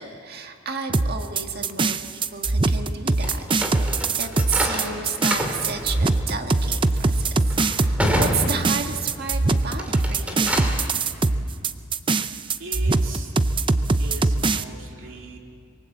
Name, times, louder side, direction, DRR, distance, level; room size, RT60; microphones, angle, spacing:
voice 1, 0.0-3.5 3.8-10.5 15.0-15.3, right 5 dB, 50° right, 5 dB, 1.7 m, -32 dB
sound 1, 0.9-14.6, right 3 dB, 25° right, 0.5 m, -22 dB
sound 2, 3.2-9.3 9.7-10.9, equal, 5° right, 2.6 m, -28 dB
voice 2, 12.6-13.3 14.0-15.4, right 3 dB, 65° right, 1 dB, 2.9 m, -39 dB
26.0 x 22.5 x 7.9 m, 2.2 s
head